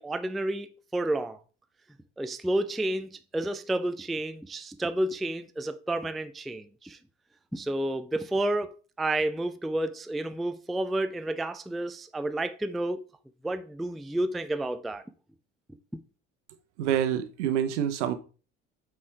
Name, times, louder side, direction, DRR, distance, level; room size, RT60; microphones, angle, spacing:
voice 1, 0.0-1.4 2.2-7.0 7.5-13.0 13.4-15.0, right 1 dB, ahead, 0.3 m, -30 dB
voice 2, 16.8-18.1, right 10 dB, 70° right, 0.9 m, -27 dB
8.3 x 4.6 x 3.3 m
figure-of-eight pair, 65°, 37 cm